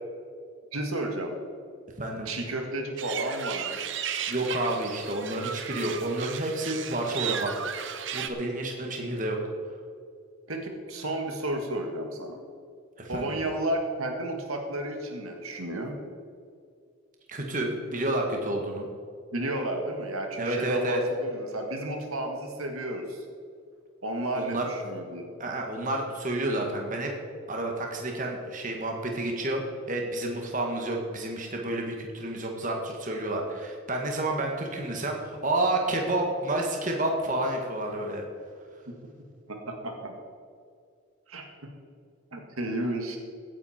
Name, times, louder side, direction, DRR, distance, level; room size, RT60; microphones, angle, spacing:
voice 1, 0.7-1.3 2.3-3.8 10.5-12.4 13.1-16.0 19.3-23.2 24.0-25.6 38.9-39.0 39.5-40.1 41.3-41.5 42.3-43.2, right 1 dB, 85° right, 3 dB, 2.0 m, -32 dB
voice 2, 2.0-2.3 4.3-7.5 8.1-9.4 13.0-13.4 17.3-18.9 20.4-21.0 24.3-24.6 25.4-27.1 27.5-29.6 29.9-38.2, right 1 dB, 35° right, 1 dB, 1.8 m, -30 dB
sound 1, 3.0-8.3, right 8 dB, 60° right, 0.9 m, -35 dB
16.5 x 9.9 x 4.5 m, 2.3 s
head